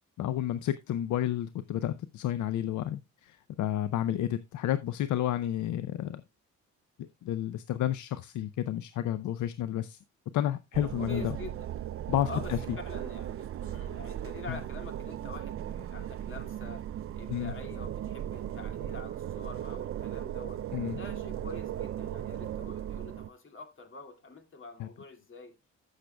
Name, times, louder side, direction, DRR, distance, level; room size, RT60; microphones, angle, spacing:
voice 1, 0.2-6.2 7.0-10.0 10.3-11.4 12.1-12.6 14.5-14.6 17.3-17.5 20.7-21.0 24.8-24.9, left 11 dB, 75° left, 0.6 m, -31 dB
sound 1, 10.7-23.3, right 11 dB, 45° right, 0.5 m, -37 dB
voice 2, 11.0-11.7 12.3-12.5 12.8-16.8 17.1-25.6, left 3 dB, 40° left, 2.4 m, -46 dB
15.0 x 6.6 x 2.3 m
cardioid pair, 90°, 30 cm